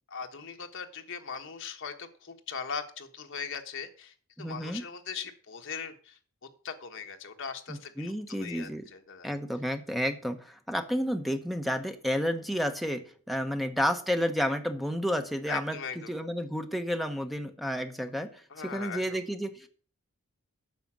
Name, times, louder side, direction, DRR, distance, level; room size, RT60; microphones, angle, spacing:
voice 1, 0.1-6.2 6.6-9.3 15.5-16.1 17.7-17.8 18.5-19.2, left 6 dB, 60° left, 5 dB, 1.3 m, -40 dB
voice 2, 4.4-4.8 7.7-8.8 9.2-15.8 16.1-19.7, equal, ahead, 7 dB, 0.9 m, -31 dB
9.3 x 5.9 x 7.3 m, 0.43 s
head